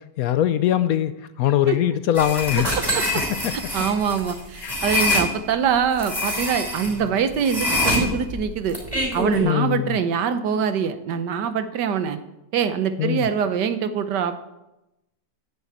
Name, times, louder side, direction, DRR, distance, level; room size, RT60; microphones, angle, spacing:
voice 1, 0.0-2.7 3.4-3.5 4.6-4.8 9.4-10.0 13.0-13.3, left 11 dB, 70° left, 12 dB, 0.9 m, -22 dB
sound 1, 2.2-5.3 6.0-6.9 7.4-9.4, left 1 dB, 20° right, 5.7 m, -25 dB
voice 2, 3.5-8.8 9.1-12.2 12.5-14.4, right 7 dB, 80° right, 10 dB, 1.5 m, -24 dB
10.5 x 7.1 x 8.4 m, 0.94 s
omnidirectional pair, 1.8 m